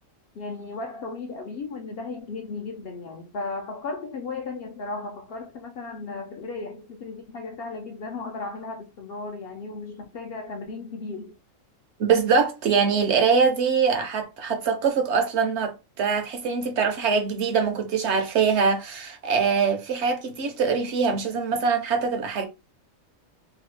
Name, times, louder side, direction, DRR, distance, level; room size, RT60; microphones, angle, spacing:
voice 1, 0.3-11.3, left 3 dB, 65° left, 0.6 m, -35 dB
voice 2, 12.0-22.4, right 5 dB, 65° right, 0.8 m, -23 dB
2.8 x 2.2 x 3.0 m
omnidirectional pair, 1.4 m